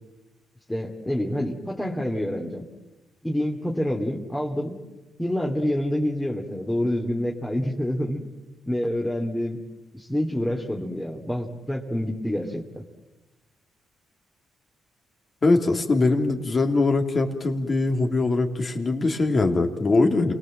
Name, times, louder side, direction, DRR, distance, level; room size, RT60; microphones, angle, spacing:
voice 1, 0.7-2.7 3.2-4.8 5.2-8.2 8.7-9.6 9.9-12.8, left 1 dB, 5° left, -1 dB, 2.6 m, -27 dB
voice 2, 15.4-20.3, left 3 dB, 35° left, 4 dB, 3.2 m, -22 dB
28.5 x 19.5 x 7.7 m, 1.1 s
cardioid pair, 75°, 0 cm